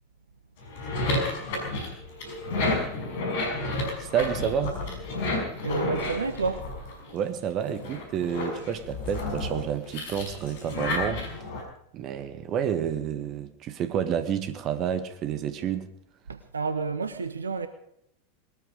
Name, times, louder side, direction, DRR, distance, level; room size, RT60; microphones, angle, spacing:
sound 1, 0.6-7.3 7.7-11.6, left 2 dB, 55° left, 5.5 m, -31 dB
voice 1, 4.0-4.8 7.1-11.3 11.9-15.9, right 8 dB, 40° right, 1.7 m, -29 dB
voice 2, 5.6-6.7 16.3-17.7, right 4 dB, 80° right, 1.2 m, -30 dB
20.5 x 14.0 x 5.0 m
figure-of-eight pair, 85°, 0 cm